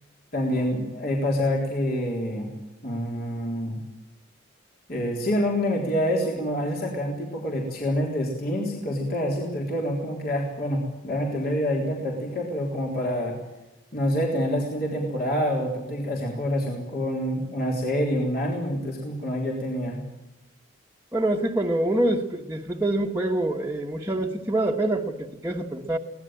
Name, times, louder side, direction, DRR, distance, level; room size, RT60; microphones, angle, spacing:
voice 1, 0.3-2.5 2.8-3.8 4.9-13.4 13.9-20.0, equal, 50° left, -1 dB, 3.7 m, -27 dB
voice 2, 21.1-26.0, right 1 dB, 15° right, -1 dB, 1.4 m, -25 dB
23.0 x 18.0 x 8.9 m, 0.98 s
head